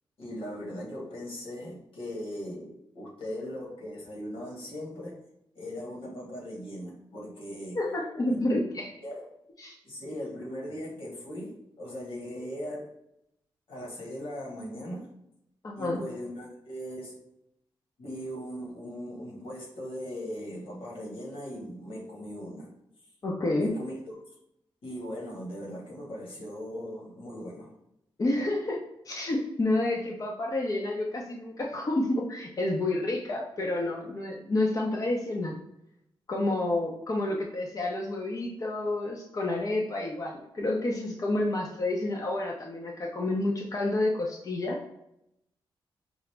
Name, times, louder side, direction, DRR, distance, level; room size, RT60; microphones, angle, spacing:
voice 1, 0.2-5.2 5.5-7.8 8.3-8.4 9.0-9.2 9.8-12.9 13.7-15.1 15.8-17.2 18.0-22.7 23.6-23.9 24.8-27.7, equal, 80° left, -3 dB, 1.4 m, -39 dB
voice 2, 7.7-9.0 9.6-9.8 15.6-16.0 23.2-23.8 28.2-35.6 36.3-44.8, left 2 dB, 40° left, -1 dB, 0.6 m, -29 dB
4.9 x 2.0 x 3.3 m, 0.79 s
cardioid pair, 80°, 9 cm